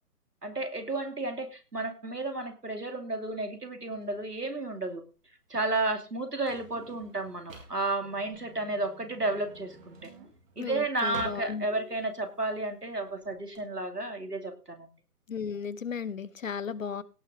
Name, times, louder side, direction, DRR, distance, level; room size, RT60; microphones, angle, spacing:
voice 1, 0.4-5.0 5.5-10.1 10.6-14.9, right 2 dB, 85° right, 6 dB, 2.8 m, -32 dB
Drawer open or close, 4.0-13.6, right 2 dB, 60° right, 4.0 m, -51 dB
sound 1, 8.0-10.3, right 1 dB, 35° right, 2.9 m, -53 dB
voice 2, 10.6-11.9 15.3-17.0, left 6 dB, 55° left, 18 dB, 1.1 m, -35 dB
17.0 x 6.4 x 5.0 m, 0.34 s
figure-of-eight pair, 140°, 46 cm